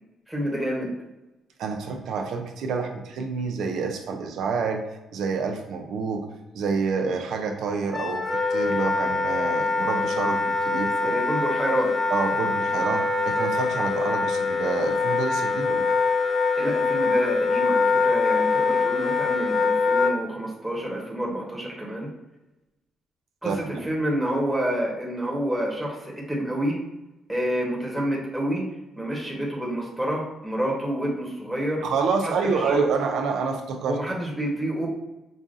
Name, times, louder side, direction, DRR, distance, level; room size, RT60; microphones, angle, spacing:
voice 1, 0.3-0.9 11.0-11.9 16.6-22.1 23.4-26.8 27.3-28.6 28.9-31.8 32.2-32.8 33.8-34.9, right 1 dB, ahead, -4 dB, 1.1 m, -28 dB
voice 2, 1.6-4.8 5.1-6.3 6.5-11.2 12.1-15.9 23.4-23.6 31.8-34.0, right 5 dB, 75° right, 3 dB, 0.5 m, -28 dB
Wind instrument woodwind instrument, 7.9-20.1, left 4 dB, 25° left, 0.5 m, -24 dB
5.1 x 2.4 x 2.6 m, 1.0 s
cardioid pair, 90°, 0 cm